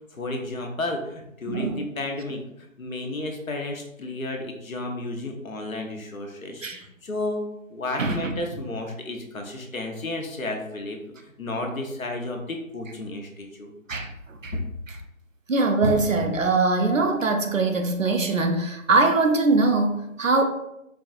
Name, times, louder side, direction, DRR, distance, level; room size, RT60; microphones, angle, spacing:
voice 1, 0.1-7.4 7.7-13.7 14.5-14.6, left 2 dB, 75° left, 2 dB, 0.9 m, -32 dB
voice 2, 1.5-1.8 6.6-6.8 8.0-8.4 13.9-14.1 14.4-14.5 15.5-20.4, right 3 dB, 65° right, 5 dB, 0.7 m, -22 dB
4.6 x 2.6 x 2.4 m, 0.82 s
figure-of-eight pair, 175°, 41 cm